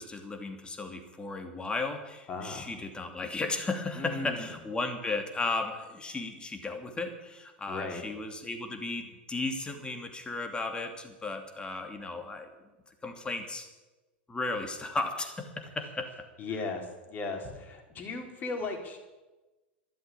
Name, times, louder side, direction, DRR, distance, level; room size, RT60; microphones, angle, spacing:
voice 1, 0.0-12.5 13.0-13.7 14.3-16.1, left 3 dB, 15° left, 5 dB, 2.7 m, -35 dB
voice 2, 2.3-2.7 4.0-4.6 7.7-8.0 16.4-19.0, left 3 dB, 35° left, 3 dB, 3.8 m, -37 dB
13.0 x 12.0 x 8.5 m, 1.1 s
figure-of-eight pair, 90°, 6 cm